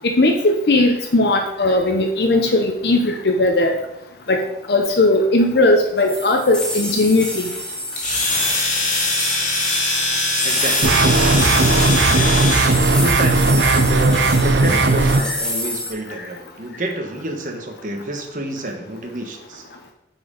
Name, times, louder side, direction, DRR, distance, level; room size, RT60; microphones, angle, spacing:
voice 1, 0.0-3.8 4.3-4.4 4.7-7.4 15.3-15.4, left 2 dB, 70° left, 3 dB, 0.7 m, -17 dB
sound 1, 6.1-15.9, left 1 dB, 5° left, 1.1 m, -26 dB
Domestic sounds home sounds, 8.0-12.8, left 2 dB, 45° left, 1.7 m, -22 dB
voice 2, 10.4-11.0 13.0-19.6, right 2 dB, 45° right, 3 dB, 1.2 m, -28 dB
sound 2, 10.8-15.2, right 3 dB, 85° right, 0.7 m, -16 dB
7.9 x 4.5 x 5.0 m, 0.87 s
head